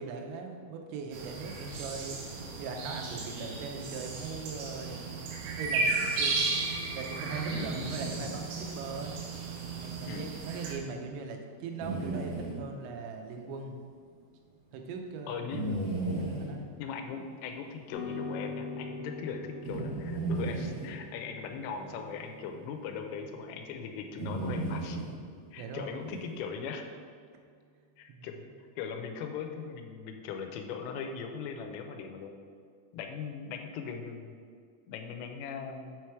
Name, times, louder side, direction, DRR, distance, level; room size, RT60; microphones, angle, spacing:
voice 1, 0.0-2.2 2.6-5.3 5.6-6.5 6.9-9.1 9.8-13.8 14.7-15.5 16.1-16.7 25.6-26.0 28.1-28.3, right 4 dB, 90° right, 3 dB, 3.3 m, -40 dB
sound 1, 1.1-10.7, right 3 dB, 75° right, 2.9 m, -35 dB
sound 2, 7.5-8.3 11.8-12.6 15.5-16.5 19.6-20.9 22.8-22.9 24.2-25.1 26.1-26.2, right 2 dB, 60° right, 3.5 m, -34 dB
voice 2, 15.3-15.8 16.8-25.0 25.5-26.8 28.0-28.4 28.8-32.4 32.9-34.4 34.9-36.0, left 6 dB, 85° left, 5 dB, 3.2 m, -39 dB
sound 3, 17.9-26.4, left 3 dB, 65° left, 3.7 m, -44 dB
7.5 x 4.7 x 4.5 m, 2.1 s
omnidirectional pair, 5.8 m